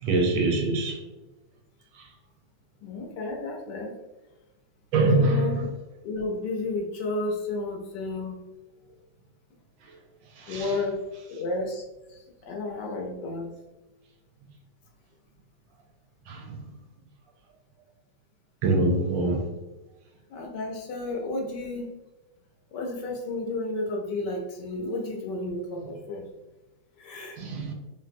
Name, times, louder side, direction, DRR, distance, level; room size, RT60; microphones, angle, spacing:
voice 1, 0.0-1.0 2.0-2.1 4.9-5.6 10.4-10.7 16.3-16.6 18.6-19.5 27.4-27.7, right 2 dB, 80° right, 1.3 m, -24 dB
voice 2, 2.8-4.0 5.0-5.6 6.0-8.4 10.5-11.8 12.1-13.6 20.3-21.9 22.7-26.2 27.0-27.4, left 2 dB, 70° left, 1.2 m, -32 dB
4.0 x 2.0 x 2.5 m
omnidirectional pair, 2.0 m